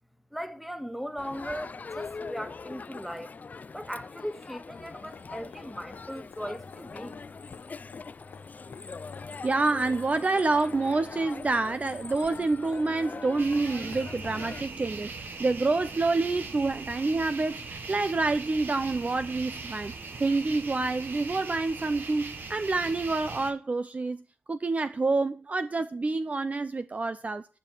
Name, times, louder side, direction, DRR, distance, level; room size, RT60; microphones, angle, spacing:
voice 1, 0.3-3.4 3.7-7.4, equal, ahead, 1.7 m, -38 dB
Crowd, 1.2-14.6, left 4 dB, 45° left, 0.5 m, -42 dB
sound 1, 4.8-14.0 15.9-16.0, left 7 dB, 85° left, 1.5 m, -54 dB
voice 2, 9.4-19.9 20.2-27.5, right 3 dB, 40° right, 0.7 m, -28 dB
sound 2, 13.4-23.5, right 4 dB, 60° right, 1.6 m, -40 dB
11.0 x 4.9 x 7.6 m
supercardioid pair, 45°, 4 cm